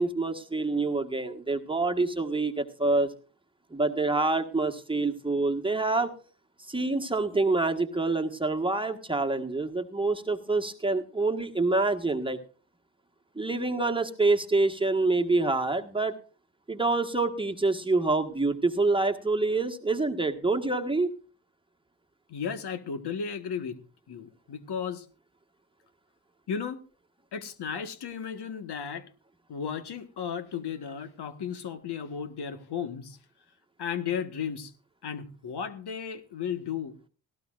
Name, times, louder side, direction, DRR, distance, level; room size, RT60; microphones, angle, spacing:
voice 1, 0.0-3.1 3.7-6.1 6.6-12.4 13.3-16.1 16.7-21.2, right 3 dB, 10° right, 5 dB, 1.5 m, -26 dB
voice 2, 22.3-23.8 24.1-25.1 26.5-26.8 27.3-29.1 29.5-33.2 33.8-34.7 35.0-37.0, left 7 dB, 60° left, 9 dB, 1.6 m, -34 dB
17.5 x 15.5 x 2.5 m, 0.38 s
cardioid pair, 70°, 44 cm